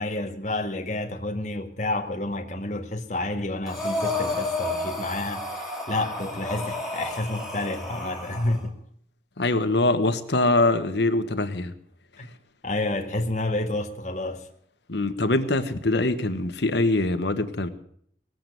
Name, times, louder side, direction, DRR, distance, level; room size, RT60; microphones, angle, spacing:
voice 1, 0.0-8.8 12.2-12.3 12.6-14.5, left 2 dB, 40° left, 1.7 m, -29 dB
Breathing, 3.7-8.6, left 2 dB, ahead, 2.3 m, -31 dB
voice 2, 9.4-11.7 14.9-17.7, left 2 dB, 70° left, 1.2 m, -23 dB
19.0 x 7.7 x 9.3 m
head